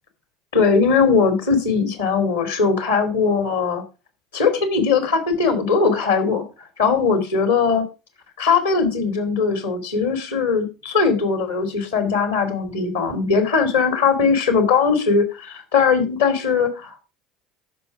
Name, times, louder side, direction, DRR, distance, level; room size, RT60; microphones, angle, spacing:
voice 1, 0.5-3.8 4.3-6.4 6.8-7.8 8.4-17.0, left 5 dB, 80° left, 8 dB, 2.7 m, -20 dB
13.5 x 5.8 x 4.6 m, 0.30 s
figure-of-eight pair, 70°, 0 cm